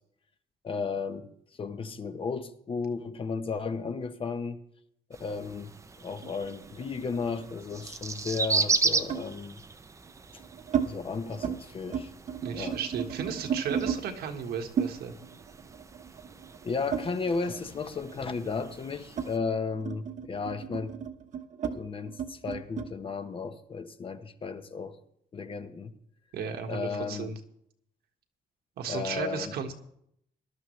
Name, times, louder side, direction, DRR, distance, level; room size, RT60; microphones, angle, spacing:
voice 1, 0.6-1.3 1.6-4.6 5.2-9.6 10.8-12.1 12.5-12.8 16.6-21.0 21.7-25.0 25.3-25.9 26.7-27.3 28.9-29.5, left 5 dB, 35° left, 0.9 m, -34 dB
sound 1, 5.1-19.4, right 4 dB, 20° right, 0.6 m, -36 dB
sound 2, 6.2-7.8 9.1-9.3 10.1-10.9 11.2-11.6 11.8-14.0 14.8-17.6 17.9-22.9, right 7 dB, 50° right, 1.1 m, -34 dB
voice 2, 12.4-15.1 26.3-27.4 28.8-29.7, right 6 dB, 75° right, 1.5 m, -34 dB
19.5 x 12.0 x 3.2 m
cardioid pair, 130°, 17 cm